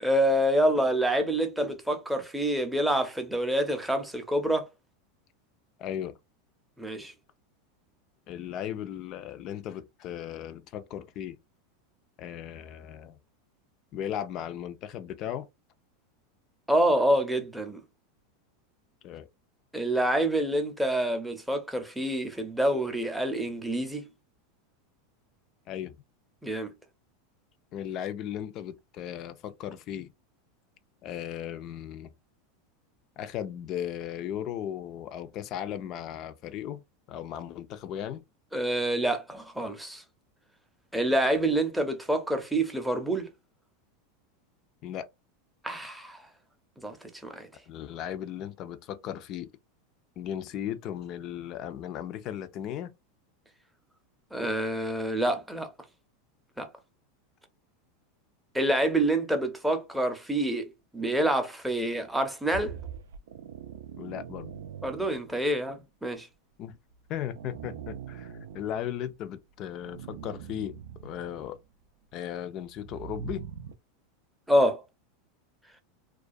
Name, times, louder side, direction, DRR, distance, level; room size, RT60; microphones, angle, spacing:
voice 1, 0.0-4.7 6.8-7.1 16.7-17.8 19.7-24.1 26.4-26.7 38.5-40.0 40.9-43.3 45.6-46.2 46.8-47.0 47.2-47.5 54.3-55.7 56.6-56.7 58.5-60.7 60.9-62.8 64.8-66.3 74.5-74.8, right 1 dB, 5° right, 0.6 m, -27 dB
voice 2, 5.8-6.1 8.3-11.4 12.2-13.2 13.9-15.5 19.0-19.3 25.7-25.9 27.7-30.1 31.0-32.1 33.2-36.8 37.1-38.2 44.8-45.1 47.7-49.5 50.2-52.9 64.0-64.6 66.6-66.8 67.1-71.6 72.1-73.4, left 10 dB, 45° left, 0.4 m, -36 dB
sound 1, 62.5-65.6 66.9-69.2 69.7-71.7 72.6-73.7, right 7 dB, 85° right, 0.4 m, -42 dB
2.3 x 2.2 x 2.5 m
supercardioid pair, 125°, 0 cm